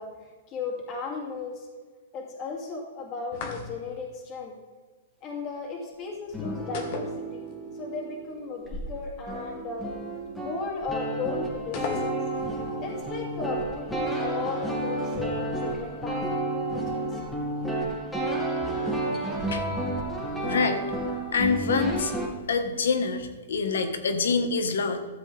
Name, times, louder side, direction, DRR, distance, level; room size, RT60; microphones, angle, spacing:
voice 1, 0.0-1.7 2.1-4.5 5.2-9.9 10.4-12.2 12.8-16.2 16.5-17.2, left 4 dB, 30° left, -1 dB, 2.6 m, -35 dB
sound 1, 3.3-4.0 6.7-7.8 8.1-8.2 11.7-12.5, left 4 dB, 45° left, 1.6 m, -35 dB
sound 2, 6.3-8.9 9.1-22.3, right 2 dB, 5° left, 2.4 m, -31 dB
voice 2, 20.4-20.8 21.3-22.1 22.5-25.0, left 4 dB, 85° left, 7 dB, 1.5 m, -26 dB
14.0 x 7.6 x 3.5 m, 1.4 s
hypercardioid pair, 145°, 0 cm